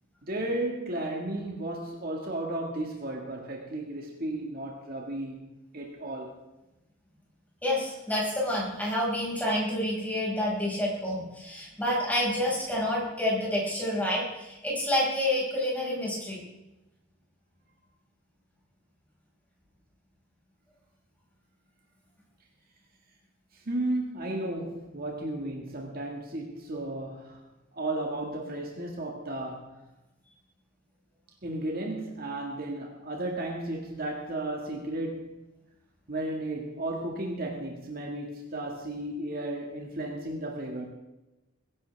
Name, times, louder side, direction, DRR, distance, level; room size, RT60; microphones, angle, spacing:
voice 1, 0.2-5.5 5.7-6.4 23.5-27.4 27.7-29.8 31.4-35.4 36.1-40.9, right 1 dB, 45° right, 0 dB, 1.9 m, -34 dB
voice 2, 7.6-16.4, left 1 dB, 10° left, -5 dB, 5.5 m, -28 dB
22.0 x 11.0 x 3.5 m, 0.98 s
head